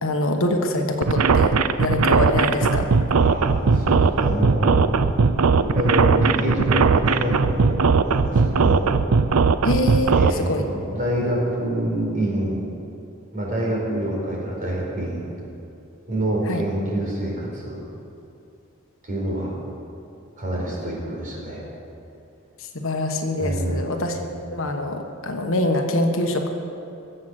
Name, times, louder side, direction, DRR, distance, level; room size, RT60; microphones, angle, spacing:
voice 1, 0.0-2.9 9.6-10.6 16.5-16.6 22.7-24.2 24.5-26.5, left 1 dB, 65° left, 4 dB, 1.3 m, -24 dB
sound 1, 1.0-10.3, right 5 dB, 85° right, 0.6 m, -18 dB
voice 2, 3.1-4.9 5.6-8.9 10.1-12.7 13.3-15.3 16.1-17.8 19.0-19.5 20.4-21.7 23.4-24.1, right 1 dB, 40° right, -3 dB, 4.4 m, -26 dB
22.0 x 7.7 x 6.4 m, 2.7 s
head